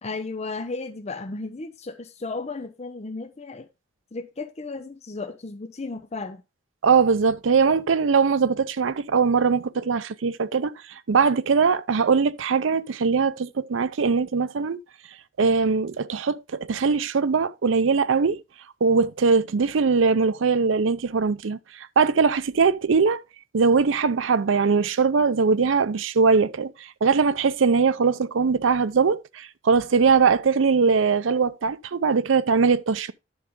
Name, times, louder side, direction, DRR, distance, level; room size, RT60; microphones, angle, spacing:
voice 1, 0.0-3.7 4.1-6.4, left 3 dB, 35° left, 0.6 m, -34 dB
voice 2, 6.8-14.8 15.4-18.4 18.8-23.2 23.5-33.1, right 5 dB, 75° right, 0.5 m, -21 dB
10.0 x 5.5 x 3.7 m
head